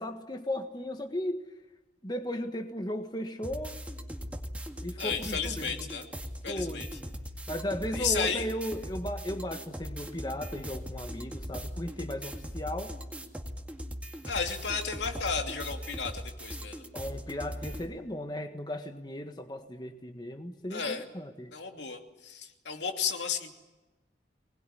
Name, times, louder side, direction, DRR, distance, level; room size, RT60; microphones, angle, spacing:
voice 1, 0.0-1.4 2.0-3.8 4.8-5.9 6.5-6.9 7.5-12.9 16.9-21.5, left 1 dB, 25° left, 6 dB, 1.5 m, -36 dB
sound 1, 3.4-17.9, equal, 10° right, 2.0 m, -40 dB
voice 2, 5.0-6.0 6.4-6.9 7.9-8.5 14.2-16.8 20.7-21.0 21.5-23.6, left 6 dB, 75° left, 5 dB, 2.8 m, -33 dB
24.0 x 20.0 x 10.0 m, 1.1 s
head